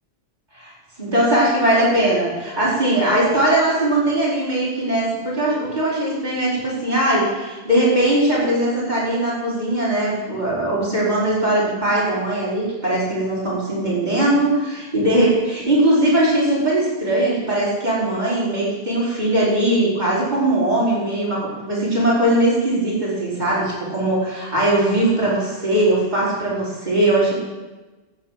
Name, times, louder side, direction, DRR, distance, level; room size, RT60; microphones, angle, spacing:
voice 1, 1.0-27.3, right 1 dB, 40° right, -7 dB, 5.4 m, -20 dB
12.5 x 9.1 x 7.6 m, 1.2 s
omnidirectional pair, 1.2 m